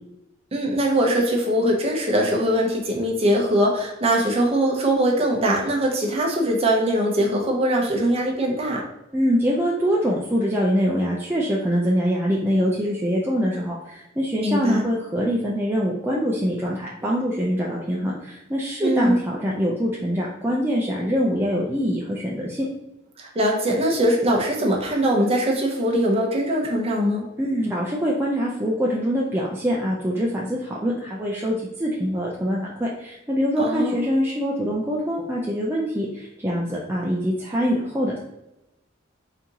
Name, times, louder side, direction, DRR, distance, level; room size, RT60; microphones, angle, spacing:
voice 1, 0.5-8.8 14.4-14.8 18.8-19.2 23.2-27.3 33.6-34.0, right 1 dB, 30° right, -1 dB, 0.8 m, -21 dB
voice 2, 9.1-22.7 27.4-38.2, equal, 10° right, -4 dB, 0.5 m, -24 dB
4.3 x 2.8 x 3.7 m, 0.93 s
head